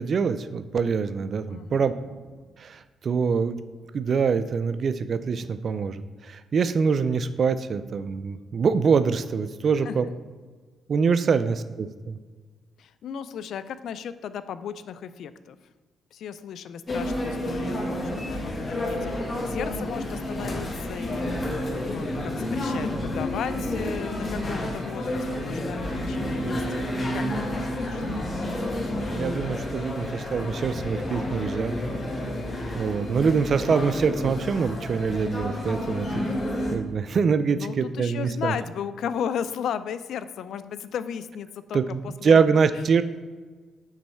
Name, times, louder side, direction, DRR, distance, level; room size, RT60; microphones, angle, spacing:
voice 1, 0.0-1.9 2.6-3.6 3.9-10.1 10.9-12.2 29.1-31.8 32.7-36.1 36.7-38.6 41.7-43.0, right 5 dB, 50° right, 12 dB, 0.3 m, -24 dB
voice 2, 1.5-1.9 9.8-10.0 12.8-15.6 16.1-21.6 21.9-26.6 27.1-28.0 37.5-42.4, left 8 dB, 70° left, 13 dB, 0.3 m, -35 dB
sound 1, 16.9-36.8, left 1 dB, 35° left, 1.1 m, -30 dB
7.3 x 3.1 x 5.5 m, 1.4 s
cardioid pair, 90°, 0 cm